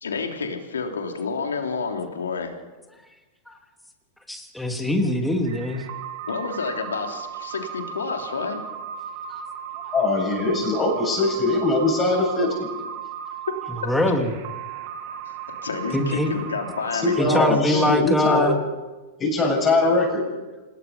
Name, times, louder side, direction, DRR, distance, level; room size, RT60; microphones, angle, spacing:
voice 1, 0.0-2.5 6.3-8.6 15.6-18.0, left 5 dB, 80° left, 3 dB, 3.3 m, -29 dB
voice 2, 4.3-5.8 9.3-9.4 13.8-14.3 15.9-16.3 17.2-18.6, left 1 dB, 5° left, 3 dB, 3.1 m, -23 dB
sound 1, 5.5-17.4, right 8 dB, 50° right, 2.8 m, -36 dB
voice 3, 9.9-12.7 17.0-18.5 19.2-20.2, left 2 dB, 25° left, -2 dB, 7.8 m, -21 dB
27.0 x 19.0 x 5.6 m, 1.2 s
hypercardioid pair, 105°, 0 cm